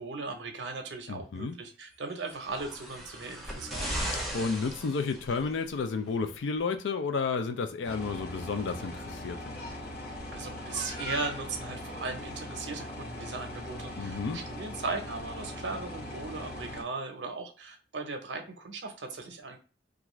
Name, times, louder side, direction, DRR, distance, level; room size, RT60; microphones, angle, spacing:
voice 1, 0.0-4.0 10.3-19.6, right 3 dB, 75° right, 0.6 m, -38 dB
voice 2, 1.1-1.5 4.3-9.6 14.0-14.4, left 4 dB, 85° left, 0.4 m, -31 dB
sound 1, 2.3-5.6 6.6-6.7, equal, ahead, 0.6 m, -37 dB
sound 2, 7.8-16.8, left 1 dB, 60° left, 0.9 m, -40 dB
2.5 x 2.3 x 3.0 m
head